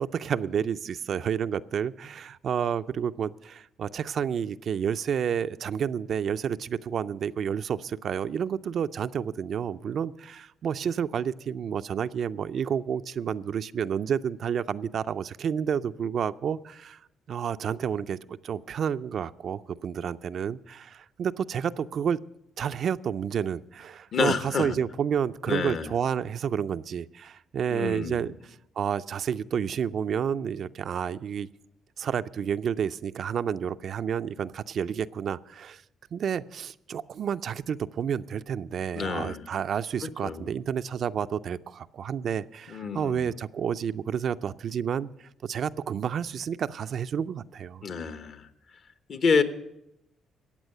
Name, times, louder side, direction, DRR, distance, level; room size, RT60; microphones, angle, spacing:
voice 1, 0.0-17.0 17.3-22.2 22.6-31.5 32.0-35.8 36.1-45.1 45.4-47.9, right 8 dB, 60° right, 13 dB, 0.4 m, -30 dB
voice 2, 24.1-24.7 25.5-25.9 27.7-28.2 38.9-39.4 40.2-40.5 42.7-43.3 47.8-48.5 49.1-49.4, left 5 dB, 55° left, 10 dB, 1.0 m, -28 dB
14.5 x 8.8 x 6.6 m, 0.83 s
cardioid pair, 90°, 0 cm